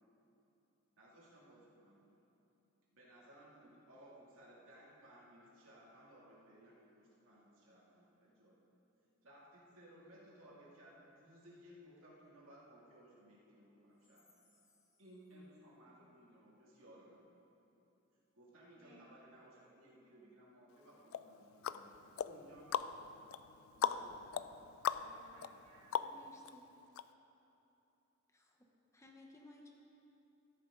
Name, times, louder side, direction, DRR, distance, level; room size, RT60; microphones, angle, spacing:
voice 1, 1.0-2.2 2.9-8.6 9.2-14.4 15.0-17.2 18.3-23.2 23.8-24.7, right 1 dB, 80° right, -6 dB, 2.5 m, -60 dB
voice 2, 18.8-20.4 24.9-26.0, right 2 dB, 50° right, -7 dB, 3.0 m, -65 dB
sound 1, 21.1-26.5 27.0-27.1, left 8 dB, 90° left, 0.3 m, -40 dB
voice 3, 26.0-26.7 28.3-28.7 28.9-29.7, left 2 dB, 15° left, 0 dB, 0.8 m, -60 dB
13.5 x 10.0 x 3.8 m, 2.9 s
head